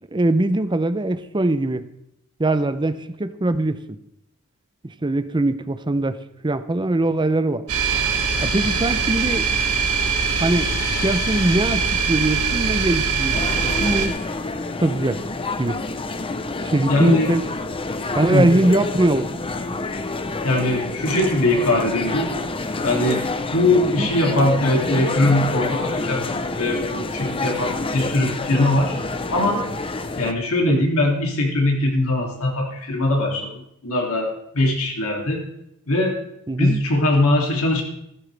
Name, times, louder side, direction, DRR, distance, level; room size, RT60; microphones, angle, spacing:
voice 1, 0.1-1.8 2.4-4.0 5.0-6.2 6.4-7.6 8.4-9.5 10.4-10.7 11.0-13.4 13.6-14.2 14.8-15.2 15.6-15.8 16.6-17.4 18.2-19.3 24.0-24.1 30.7-30.8 36.5-36.8, right 1 dB, 20° right, 12 dB, 0.6 m, -21 dB
sound 1, 7.7-14.1, right 5 dB, 75° right, 2.4 m, -22 dB
sound 2, 13.3-30.3, left 3 dB, 25° left, 0.7 m, -28 dB
voice 2, 16.9-17.3 18.3-18.5 20.4-22.3 22.8-23.2 23.5-26.2 26.6-28.9 29.3-29.6 30.2-35.4 35.9-36.2 36.6-37.8, left 1 dB, 70° left, 0 dB, 2.8 m, -21 dB
16.0 x 14.5 x 3.4 m, 0.81 s
head